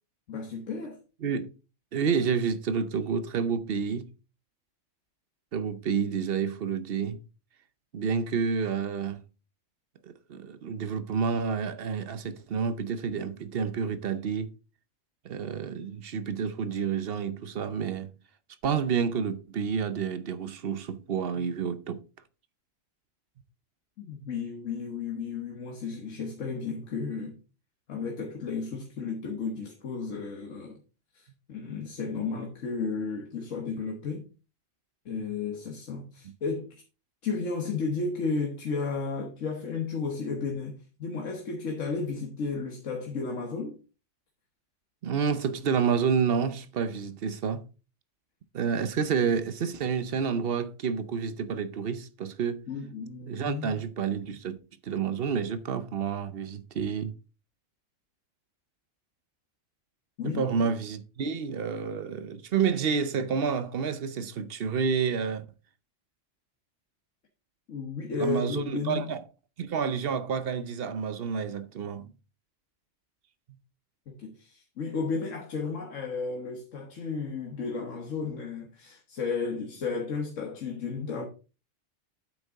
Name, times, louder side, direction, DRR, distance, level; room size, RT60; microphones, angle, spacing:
voice 1, 0.3-1.0 24.0-27.4 27.9-30.8 31.1-34.3 35.0-36.7 37.2-43.8 52.7-53.8 60.2-60.6 67.7-69.0 74.1-81.2, left 4 dB, 85° left, 1.6 m, -33 dB
voice 2, 1.9-4.1 5.5-7.2 7.9-9.2 10.0-14.5 15.2-18.1 18.6-22.0 45.0-47.7 48.5-52.6 53.3-54.6 54.8-57.1 60.2-65.5 68.2-69.2 69.6-72.1, right 6 dB, 55° right, 0.9 m, -29 dB
8.4 x 6.6 x 3.5 m
omnidirectional pair, 1.3 m